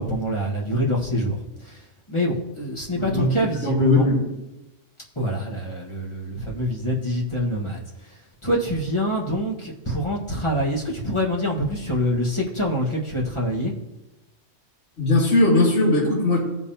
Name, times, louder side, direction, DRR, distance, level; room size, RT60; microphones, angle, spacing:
voice 1, 0.0-1.8 2.1-4.1 5.1-7.8 8.4-13.7, equal, 25° left, -3 dB, 1.5 m, -25 dB
voice 2, 2.9-3.3 3.6-4.2 15.0-16.4, left 1 dB, 65° left, -7 dB, 2.7 m, -19 dB
16.0 x 5.4 x 2.9 m, 1.0 s
omnidirectional pair, 1.2 m